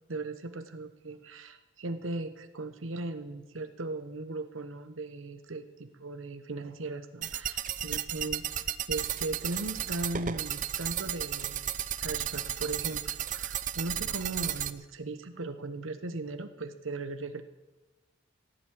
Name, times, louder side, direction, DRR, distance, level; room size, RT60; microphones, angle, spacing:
voice 1, 0.1-11.6 12.0-17.4, right 2 dB, 80° right, 10 dB, 1.0 m, -38 dB
sound 1, 7.2-14.7, right 10 dB, 40° right, 0.5 m, -34 dB
16.0 x 7.7 x 8.5 m, 1.1 s
head